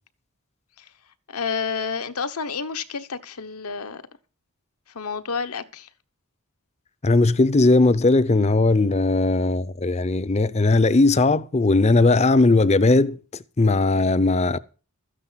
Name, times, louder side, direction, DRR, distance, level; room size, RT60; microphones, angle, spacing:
voice 1, 1.3-4.0 4.9-5.9, left 5 dB, 85° left, 1.1 m, -30 dB
voice 2, 7.0-13.2 13.6-14.6, left 2 dB, 30° left, 0.6 m, -18 dB
13.5 x 10.0 x 5.7 m
head